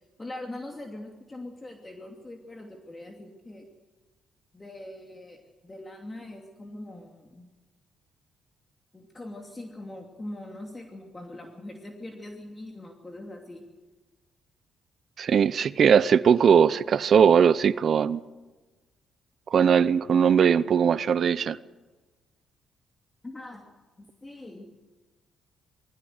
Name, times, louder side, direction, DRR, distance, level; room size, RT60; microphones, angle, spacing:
voice 1, 0.2-3.7 4.5-7.5 8.9-13.6 23.2-23.7 24.0-24.7, left 1 dB, 20° left, 2.8 m, -42 dB
voice 2, 15.2-18.2 19.5-21.6, right 7 dB, 55° right, 0.8 m, -20 dB
22.0 x 15.5 x 8.0 m
cardioid pair, 90°, 0 cm